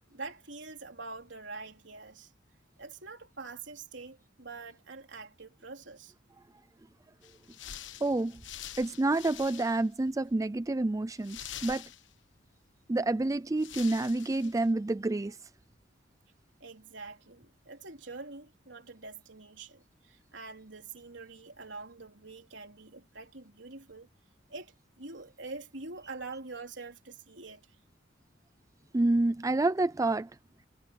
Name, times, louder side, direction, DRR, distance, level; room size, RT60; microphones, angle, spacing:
voice 1, 0.1-2.3 2.8-6.1 16.6-24.1 24.5-27.8, right 3 dB, 75° right, 4.0 m, -45 dB
sound 1, 7.2-10.0 10.3-10.4 11.2-12.4 13.2-13.3 13.6-14.7, left 10 dB, 80° left, 1.2 m, -46 dB
voice 2, 8.0-8.4 8.8-11.8 12.9-15.4 28.9-30.3, right 2 dB, 20° right, 0.4 m, -28 dB
head